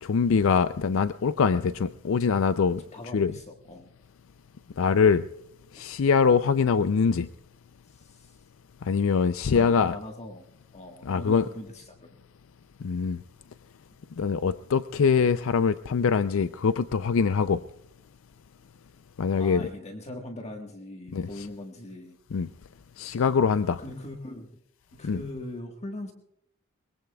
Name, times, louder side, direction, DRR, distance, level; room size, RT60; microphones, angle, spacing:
voice 1, 0.0-2.8 3.1-3.3 4.8-5.2 5.7-7.3 8.8-10.0 11.1-11.4 12.8-13.2 14.2-17.6 19.2-19.6 21.1-21.3 22.3-22.5 23.0-23.8 25.0-25.2, left 5 dB, 70° left, 13 dB, 0.4 m, -23 dB
voice 2, 2.7-3.9 7.9-8.4 9.5-10.5 10.7-12.1 19.4-22.2 23.8-24.6 24.9-26.1, left 1 dB, 35° left, 3 dB, 1.5 m, -40 dB
22.5 x 22.0 x 2.3 m, 0.76 s
head